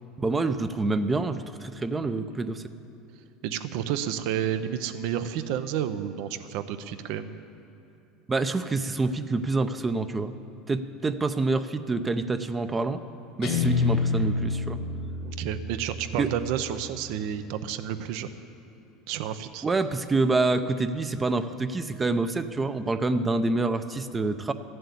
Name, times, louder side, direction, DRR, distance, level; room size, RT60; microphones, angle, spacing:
voice 1, 0.2-2.6 8.3-10.3 10.7-13.0 13.4-14.8 16.2-16.3 19.6-24.5, right 3 dB, 20° right, 10 dB, 0.5 m, -27 dB
voice 2, 3.4-7.4 15.2-18.3 19.1-19.6, right 9 dB, 70° right, 11 dB, 0.7 m, -30 dB
Guitar, 13.4-16.6, left 4 dB, 70° left, 1.3 m, -28 dB
14.0 x 7.7 x 8.4 m, 2.7 s
supercardioid pair, 120°, 0 cm